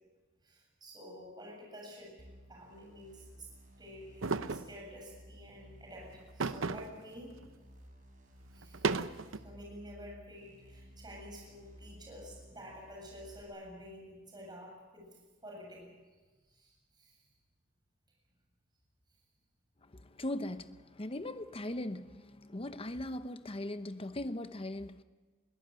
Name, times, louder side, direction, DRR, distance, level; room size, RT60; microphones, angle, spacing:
voice 1, 0.4-2.1 2.5-3.5 3.8-7.4 8.5-8.9 9.3-15.1 15.4-15.9 16.5-17.2, equal, 20° right, 7.3 m, -50 dB
sound 1, 2.2-13.4, equal, 40° right, 6.2 m, -56 dB
sound 2, 4.2-4.7 6.4-7.0 7.4-7.5 8.6-9.4, right 4 dB, 85° right, 0.8 m, -33 dB
voice 2, 19.8-25.0, left 1 dB, 30° left, 0.9 m, -39 dB
22.5 x 18.0 x 9.1 m
head